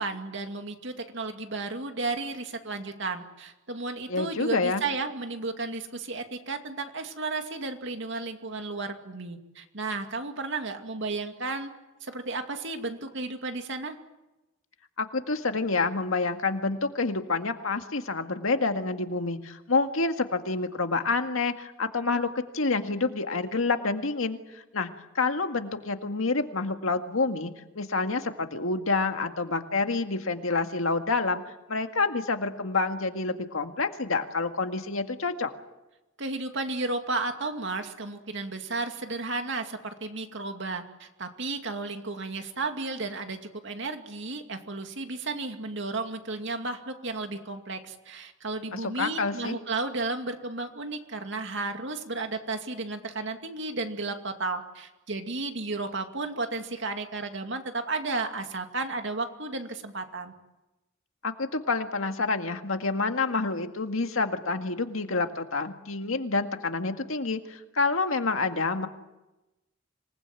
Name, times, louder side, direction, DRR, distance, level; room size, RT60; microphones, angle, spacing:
voice 1, 0.0-11.7 12.0-14.0 36.2-60.3, right 3 dB, 65° right, 5 dB, 2.4 m, -33 dB
voice 2, 4.1-4.8 15.0-22.3 22.5-24.9 25.2-31.4 31.7-35.5 48.7-49.6 61.2-68.9, left 3 dB, 90° left, 6 dB, 1.9 m, -28 dB
26.5 x 19.5 x 9.1 m, 1.0 s
head